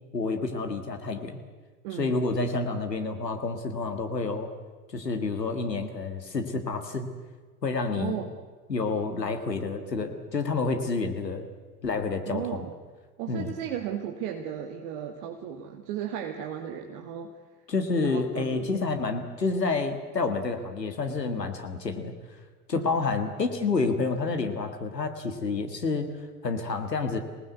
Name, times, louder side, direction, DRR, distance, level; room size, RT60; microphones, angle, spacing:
voice 1, 0.1-1.4 1.9-4.5 4.9-7.1 7.6-8.2 8.7-11.5 11.8-12.7 13.3-13.5 17.7-22.1 22.7-26.1 26.4-27.2, left 4 dB, 90° left, 6 dB, 2.0 m, -29 dB
voice 2, 1.8-2.2 7.9-8.3 12.3-12.7 13.2-17.3 18.0-18.7 22.7-22.9, right 9 dB, 60° right, 4 dB, 2.2 m, -35 dB
27.0 x 19.5 x 8.1 m, 1.4 s
figure-of-eight pair, 70°, 48 cm